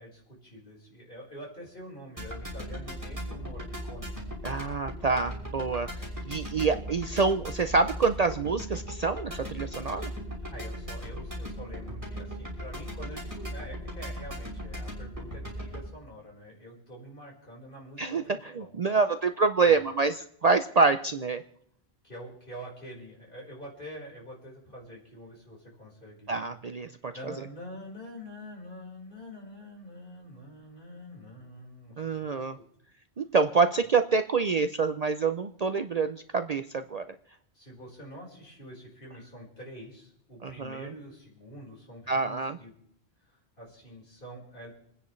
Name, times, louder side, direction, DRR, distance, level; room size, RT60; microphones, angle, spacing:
voice 1, 0.0-4.2 10.1-10.2 10.5-18.7 19.6-19.9 22.0-26.4 27.1-32.6 37.5-42.7 43.2-44.7, equal, 55° left, -3 dB, 4.9 m, -46 dB
sound 1, 2.2-15.9, equal, 15° right, 6.2 m, -38 dB
voice 2, 4.4-5.9 6.2-10.1 18.0-18.2 18.6-21.4 26.3-27.1 32.0-32.6 33.2-37.1 40.4-40.9 42.1-42.6, right 4 dB, 45° right, 9 dB, 0.6 m, -26 dB
29.0 x 10.0 x 3.2 m, 0.70 s
omnidirectional pair, 1.1 m